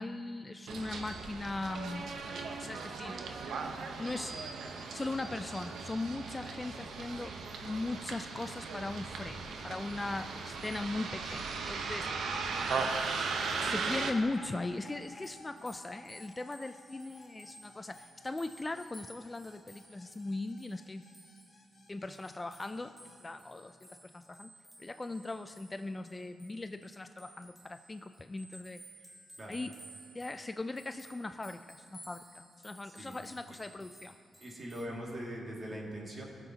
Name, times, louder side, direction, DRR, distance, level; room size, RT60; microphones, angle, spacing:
voice 1, 0.0-2.2 2.6-3.3 4.0-4.4 4.9-7.3 7.6-12.1 13.6-21.1 21.9-24.5 24.8-28.8 29.5-29.8 30.1-34.2, left 2 dB, 20° left, 9 dB, 0.3 m, -39 dB
Bus, 0.7-14.1, right 4 dB, 75° right, 0.9 m, -38 dB
sound 1, 12.0-23.2, left 3 dB, 55° left, 1.3 m, -54 dB
sound 2, 15.0-34.8, right 1 dB, 5° left, 1.7 m, -57 dB
voice 2, 34.4-36.2, equal, 35° right, -2 dB, 2.2 m, -41 dB
18.5 x 7.3 x 2.8 m, 2.5 s
cardioid pair, 85°, 0 cm